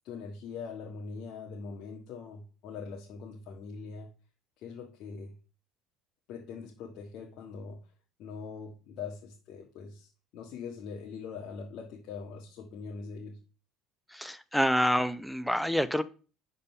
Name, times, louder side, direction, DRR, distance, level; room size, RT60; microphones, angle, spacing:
voice 1, 0.0-4.1 4.6-5.3 6.3-7.8 8.2-13.4, left 5 dB, 65° left, 0 dB, 1.6 m, -42 dB
voice 2, 14.1-16.0, equal, ahead, 13 dB, 0.8 m, -27 dB
10.5 x 4.2 x 5.5 m, 0.37 s
supercardioid pair, 85°, 0 cm